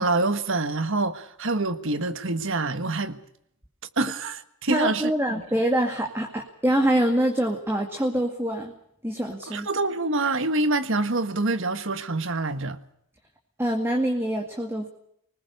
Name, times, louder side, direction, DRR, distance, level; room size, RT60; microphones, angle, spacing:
voice 1, 0.0-3.2 4.0-5.1 9.5-12.8, right 2 dB, 60° right, 1.6 m, -26 dB
voice 2, 4.7-8.7 9.0-9.7 13.6-14.9, right 1 dB, 10° right, 2.1 m, -25 dB
26.5 x 20.0 x 6.6 m
head